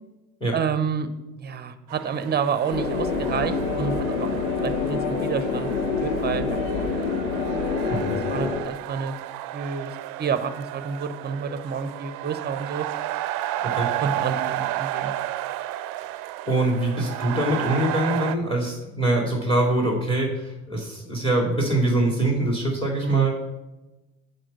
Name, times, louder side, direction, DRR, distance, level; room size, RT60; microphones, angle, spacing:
voice 1, 0.5-1.1 1.4-5.7 6.0-6.9 7.7-8.0 8.3-9.1 9.5-12.9 13.6-15.1 23.0-23.3, right 6 dB, 25° right, 11 dB, 0.8 m, -29 dB
sound 1, 1.9-18.4, right 14 dB, 55° right, 0.6 m, -33 dB
sound 2, 2.7-8.6, left 4 dB, 85° left, 1.0 m, -26 dB
voice 2, 16.4-23.3, right 1 dB, 15° left, 0 dB, 2.5 m, -24 dB
7.5 x 4.3 x 6.7 m, 1.0 s
hypercardioid pair, 70°, 41 cm